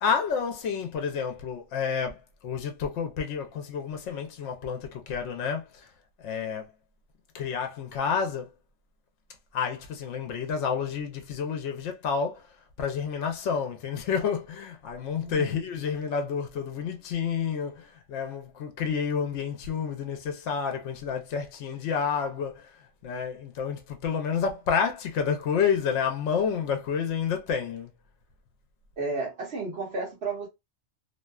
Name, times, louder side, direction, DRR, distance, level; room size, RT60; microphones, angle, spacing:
voice 1, 0.0-5.9 6.2-6.7 7.3-8.5 9.5-12.5 12.8-22.7 23.0-27.9, left 6 dB, 75° left, 0.9 m, -29 dB
voice 2, 15.2-15.6 29.0-30.5, right 3 dB, 60° right, 0.9 m, -32 dB
2.6 x 2.2 x 2.2 m
omnidirectional pair, 1.3 m